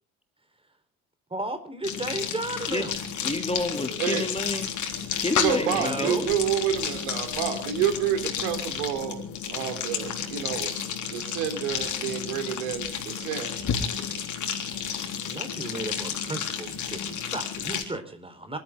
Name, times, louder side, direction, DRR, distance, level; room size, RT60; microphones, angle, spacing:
voice 1, 1.3-3.0 5.7-6.3 15.3-18.6, right 2 dB, 15° right, 9 dB, 4.2 m, -34 dB
sound 1, 1.8-17.8, left 7 dB, 45° left, 3.8 m, -31 dB
voice 2, 3.2-4.7 5.2-6.3, left 2 dB, 15° left, 5 dB, 2.8 m, -29 dB
voice 3, 5.4-9.2 9.5-10.7 11.1-13.6, right 9 dB, 70° right, 8 dB, 3.6 m, -29 dB
27.5 x 13.5 x 3.8 m, 0.40 s
hypercardioid pair, 60°, 42 cm